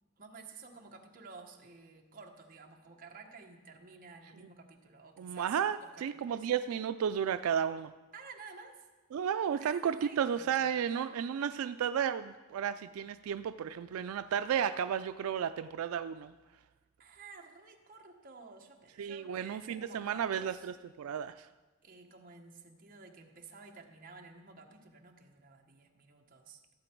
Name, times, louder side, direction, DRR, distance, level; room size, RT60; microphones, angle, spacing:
voice 1, 0.2-5.5 5.8-6.4 8.1-8.9 9.6-10.7 17.0-20.7 21.8-26.6, right 4 dB, 45° right, 2 dB, 1.2 m, -52 dB
voice 2, 5.2-7.9 9.1-16.3 19.0-21.5, right 8 dB, 90° right, 11 dB, 0.3 m, -33 dB
15.0 x 7.7 x 4.5 m, 1.2 s
head